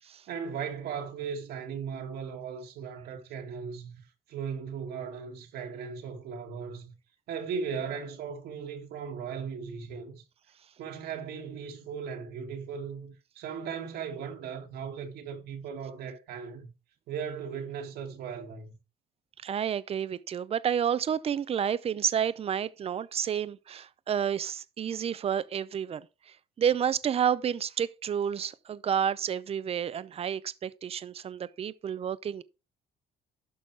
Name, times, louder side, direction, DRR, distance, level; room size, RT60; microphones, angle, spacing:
voice 1, 0.3-4.0 4.3-6.9 7.3-10.2 10.8-16.7 17.1-18.7, right 6 dB, 75° right, 1.8 m, -37 dB
voice 2, 19.4-32.4, right 8 dB, 35° right, 0.6 m, -30 dB
12.0 x 4.1 x 4.5 m
cardioid pair, 110°, 17 cm